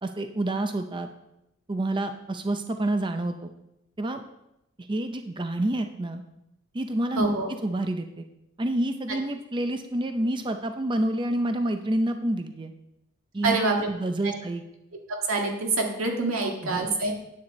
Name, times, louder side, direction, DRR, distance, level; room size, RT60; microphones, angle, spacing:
voice 1, 0.0-1.1 1.7-3.5 4.0-4.2 4.8-6.2 6.7-7.3 7.6-8.2 8.6-12.7 13.3-13.6 13.9-14.6 16.6-16.9, right 1 dB, 25° right, 7 dB, 0.5 m, -28 dB
voice 2, 7.2-7.5 13.4-13.9 14.2-14.4 15.3-17.1, right 3 dB, 90° right, 1 dB, 2.0 m, -26 dB
9.6 x 8.5 x 4.2 m, 0.85 s
head